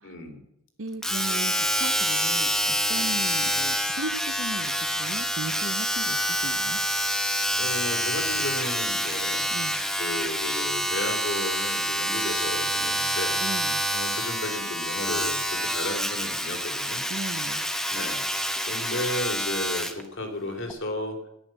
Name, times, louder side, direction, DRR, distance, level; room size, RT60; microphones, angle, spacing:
voice 1, 0.0-0.4 2.9-3.2 7.6-9.5 10.0-13.4 13.9-17.0 17.9-18.2 18.7-21.2, left 1 dB, 65° left, 4 dB, 3.3 m, -33 dB
voice 2, 0.8-6.8 9.5-9.8 13.4-13.8 17.1-17.6, right 2 dB, 70° right, 8 dB, 1.1 m, -37 dB
Domestic sounds home sounds, 1.0-20.0 20.7-20.8, equal, ahead, 1.1 m, -27 dB
14.0 x 11.0 x 7.6 m, 0.81 s
head